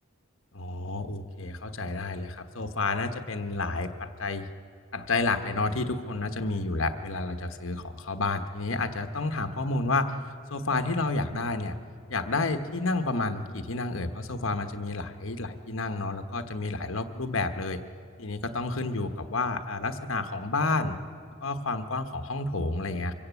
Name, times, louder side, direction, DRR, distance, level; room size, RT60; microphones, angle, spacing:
voice 1, 0.5-4.5 4.9-10.1 10.5-11.7 12.1-17.8 18.2-21.0 21.4-23.1, left 3 dB, 70° left, 8 dB, 1.2 m, -30 dB
24.5 x 16.0 x 8.3 m, 2.4 s
head